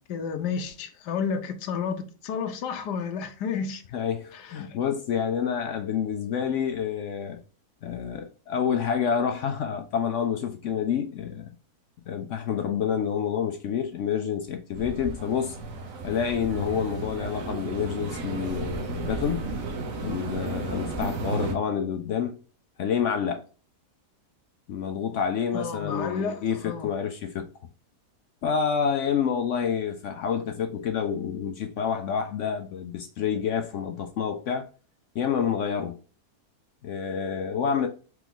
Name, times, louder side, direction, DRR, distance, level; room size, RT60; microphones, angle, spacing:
voice 1, 0.0-3.8 4.3-4.8 25.5-26.9, left 6 dB, 85° left, 1.3 m, -31 dB
voice 2, 3.9-7.4 7.8-11.5 12.1-15.6 16.0-19.5 20.0-22.4 22.8-23.4 24.7-27.5 28.4-34.7 35.1-36.0 36.8-37.9, left 7 dB, 70° left, 0.7 m, -28 dB
sound 1, 14.7-21.6, right 3 dB, 60° right, 1.2 m, -33 dB
4.6 x 3.0 x 3.7 m
omnidirectional pair, 1.8 m